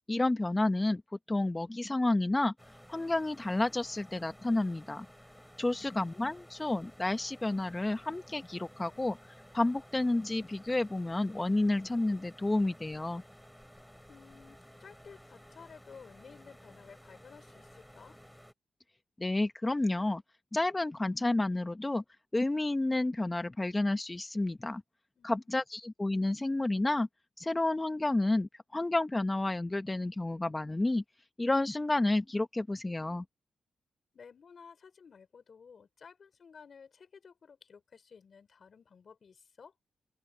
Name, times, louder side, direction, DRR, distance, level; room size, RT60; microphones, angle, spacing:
voice 1, 0.1-1.0 1.3-2.5 2.9-5.1 5.6-9.2 9.5-13.2 19.2-20.2 20.5-22.0 22.3-24.8 25.2-27.1 27.4-31.0 31.4-33.2, left 2 dB, 20° left, 1.0 m, -30 dB
sound 1, 2.6-18.5, equal, ahead, 5.3 m, -55 dB
voice 2, 14.1-18.2 25.2-25.5 34.1-39.7, left 6 dB, 60° left, 4.8 m, -54 dB
open air
cardioid pair, 60°, 0 cm